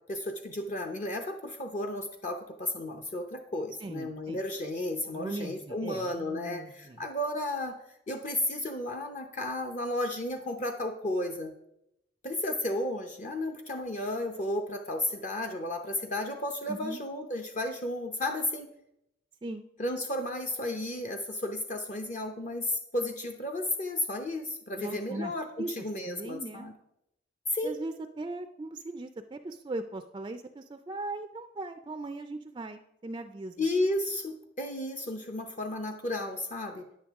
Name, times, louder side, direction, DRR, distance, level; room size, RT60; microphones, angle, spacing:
voice 1, 0.1-7.8 8.1-11.5 12.2-18.7 19.8-26.7 27.5-27.7 33.6-36.8, left 1 dB, 40° left, 4 dB, 0.6 m, -33 dB
voice 2, 3.8-4.4 5.1-7.0 16.7-17.0 19.4-19.7 24.8-25.3 25.6-26.7 27.6-33.7, right 2 dB, 25° right, 9 dB, 0.3 m, -39 dB
9.9 x 8.5 x 3.5 m, 0.82 s
head